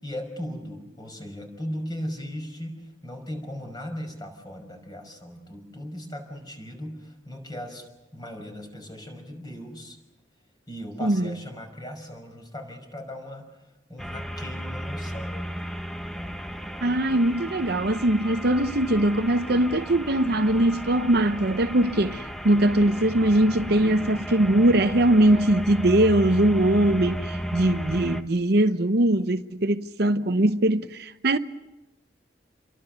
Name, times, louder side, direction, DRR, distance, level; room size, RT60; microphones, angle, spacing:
voice 1, 0.0-7.9 8.1-10.0 10.7-15.6 16.1-16.4, equal, 20° left, 5.8 m, -38 dB
sound 1, 14.0-28.2, equal, ahead, 1.1 m, -34 dB
voice 2, 16.8-31.4, right 1 dB, 55° right, 0.9 m, -21 dB
29.5 x 23.0 x 6.7 m
head